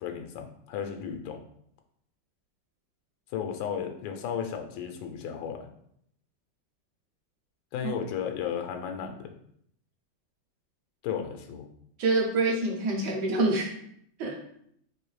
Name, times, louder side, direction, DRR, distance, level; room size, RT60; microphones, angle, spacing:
voice 1, 0.0-1.4 3.3-5.7 7.7-9.3 11.0-11.7, left 8 dB, 85° left, 5 dB, 1.3 m, -34 dB
voice 2, 12.0-13.7 14.2-14.4, right 2 dB, 70° right, 0 dB, 1.2 m, -26 dB
4.5 x 2.6 x 3.2 m, 0.70 s
omnidirectional pair, 2.1 m